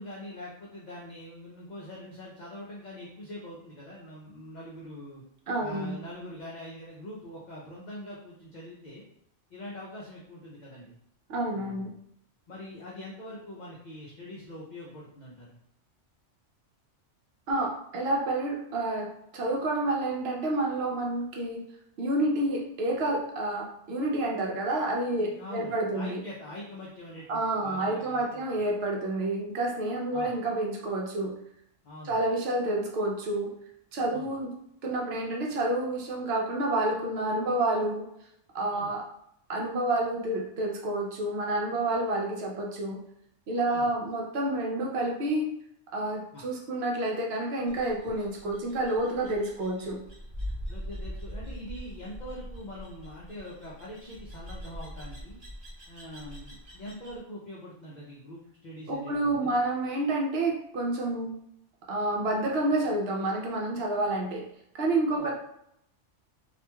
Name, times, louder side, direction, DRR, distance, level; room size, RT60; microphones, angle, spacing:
voice 1, 0.0-5.2 5.6-9.0 9.5-11.0 11.5-11.9 12.5-15.6 25.2-28.5 30.1-30.3 31.8-32.2 34.1-34.3 38.7-38.9 43.7-43.9 46.3-46.5 50.7-55.4 55.9-59.6 65.1-65.3, left 1 dB, 55° left, -5 dB, 0.5 m, -43 dB
voice 2, 5.5-5.9 11.3-11.9 17.5-19.1 19.3-21.6 22.0-26.2 27.3-31.3 32.0-33.5 33.9-34.5 34.8-38.0 38.5-39.0 39.5-43.0 43.5-45.5 45.9-50.0 58.9-61.3 61.9-64.4 64.7-65.3, right 2 dB, 65° right, 0 dB, 0.8 m, -29 dB
sound 1, 47.7-57.2, equal, 35° right, 1.1 m, -42 dB
2.9 x 2.4 x 2.2 m, 0.75 s
omnidirectional pair, 1.2 m